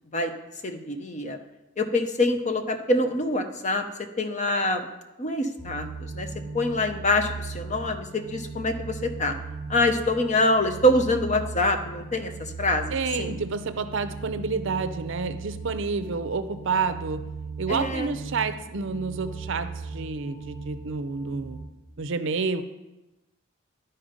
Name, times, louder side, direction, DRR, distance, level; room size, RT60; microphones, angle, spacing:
voice 1, 0.6-1.4 1.8-3.8 4.2-4.9 5.2-9.4 9.7-13.4 17.7-18.1, left 1 dB, 35° left, 6 dB, 0.7 m, -25 dB
sound 1, 5.6-21.6, right 4 dB, 10° left, 2.0 m, -38 dB
voice 2, 12.9-17.2 17.6-21.6 22.0-22.6, right 4 dB, 60° right, 10 dB, 0.6 m, -29 dB
11.5 x 4.3 x 5.1 m, 1.0 s
head